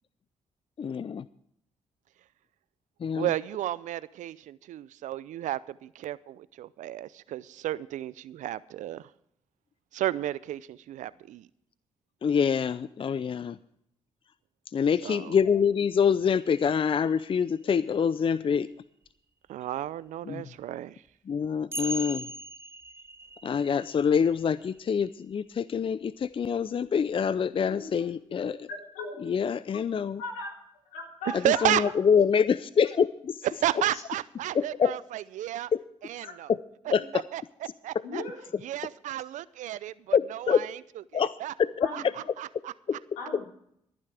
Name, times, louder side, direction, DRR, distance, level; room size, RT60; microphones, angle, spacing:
voice 1, 0.8-1.2 3.0-3.3 12.2-13.6 14.7-18.7 20.3-20.4 21.3-22.2 23.4-28.6 29.2-30.2 31.3-33.3 34.5-35.0 36.5-36.6 36.9-37.2 40.1-40.6 41.1-41.3 41.6-42.1 42.9-43.0, left 7 dB, 45° left, 0.5 m, -25 dB
voice 2, 3.1-9.1 9.9-11.5 15.0-15.4 19.5-21.0 31.4-31.9 33.5-35.7 36.0-36.5 36.8-38.2 38.6-40.8 41.1-41.5 41.9-42.7, right 13 dB, 70° right, 0.5 m, -33 dB
sound 1, 16.3-17.9 19.1-19.2 20.6-20.7 21.7-25.8 27.4-27.5, right 1 dB, 20° right, 0.6 m, -40 dB
voice 3, 27.8-28.1 28.7-29.3 30.2-30.5 30.9-31.6 33.9-34.0 36.2-36.3 38.0-38.4 41.8-42.3 43.2-43.5, left 3 dB, 85° left, 3.9 m, -38 dB
23.0 x 9.8 x 3.4 m
hypercardioid pair, 45°, 13 cm